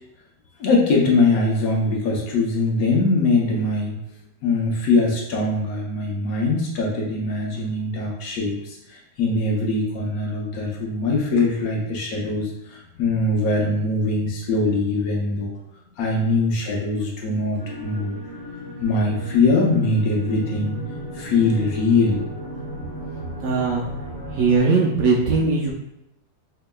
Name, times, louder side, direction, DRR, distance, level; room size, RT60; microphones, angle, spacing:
voice 1, 0.6-4.0 4.4-15.5 16.0-18.2 18.8-20.8 21.1-22.2, left 3 dB, 65° left, -2 dB, 1.0 m, -22 dB
sound 1, 17.6-24.6, equal, 20° right, 0.7 m, -35 dB
voice 2, 23.4-23.8 24.3-25.7, right 4 dB, 70° right, -2 dB, 0.8 m, -19 dB
4.5 x 2.9 x 2.2 m, 0.85 s
omnidirectional pair, 1.8 m